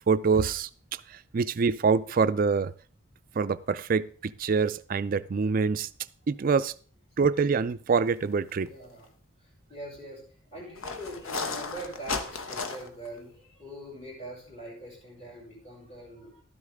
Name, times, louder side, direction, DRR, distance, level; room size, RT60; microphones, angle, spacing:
voice 1, 0.1-0.7 1.1-2.7 3.4-5.9 6.3-6.7 7.2-8.7, right 5 dB, 45° right, 0.4 m, -25 dB
sound 1, 8.5-8.7 9.0-9.1 10.8-13.1, left 4 dB, 80° left, 1.1 m, -34 dB
voice 2, 8.6-9.1 9.4-16.4, right 1 dB, 30° left, 6.6 m, -43 dB
12.5 x 9.8 x 3.6 m
head